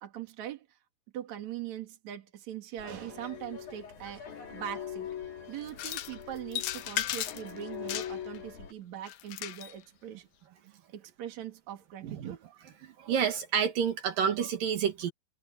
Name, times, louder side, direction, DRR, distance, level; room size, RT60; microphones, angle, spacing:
voice 1, 0.0-0.7 1.1-5.1 5.5-10.2 10.9-12.4, right 11 dB, 55° right, 3.3 m, -41 dB
sound 1, 2.8-8.7, left 8 dB, 60° left, 4.7 m, -43 dB
sound 2, 5.7-6.2 6.5-7.5 7.9-8.4 9.1-9.7, left 13 dB, 85° left, 2.6 m, -35 dB
voice 2, 12.0-12.4 12.8-15.1, right 7 dB, 75° right, 3.5 m, -29 dB
omnidirectional pair, 4.1 m